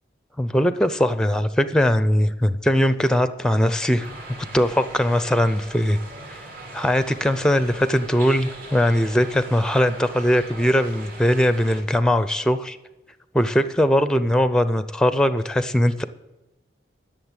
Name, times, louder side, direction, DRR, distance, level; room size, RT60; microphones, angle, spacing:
voice 1, 0.4-4.1 4.5-6.0 6.3-6.4 6.7-12.8 13.3-16.0, equal, 5° left, 12 dB, 0.5 m, -20 dB
sound 1, 4.0-11.8, right 2 dB, 50° right, 2.6 m, -40 dB
11.5 x 6.8 x 8.9 m, 1.0 s
head